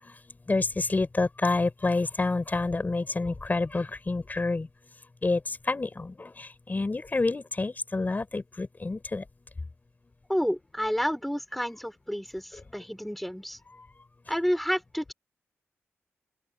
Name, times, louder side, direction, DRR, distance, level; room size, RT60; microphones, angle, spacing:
voice 1, 0.0-4.7 5.2-9.3 12.5-12.6 13.7-13.9, left 3 dB, 35° left, 5.1 m, -28 dB
voice 2, 10.3-13.6 14.3-15.1, equal, ahead, 5.3 m, -30 dB
open air
cardioid pair, 60°, 5 cm